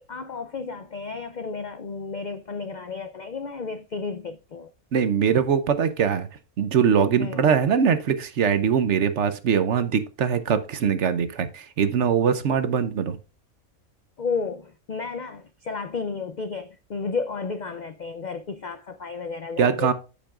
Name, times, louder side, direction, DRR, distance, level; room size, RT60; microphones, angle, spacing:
voice 1, 0.1-4.7 7.2-7.5 14.2-19.9, left 4 dB, 65° left, 0.4 m, -32 dB
voice 2, 4.9-6.3 6.6-13.2 19.6-19.9, right 7 dB, 60° right, 1.0 m, -22 dB
13.5 x 5.4 x 2.4 m
omnidirectional pair, 1.5 m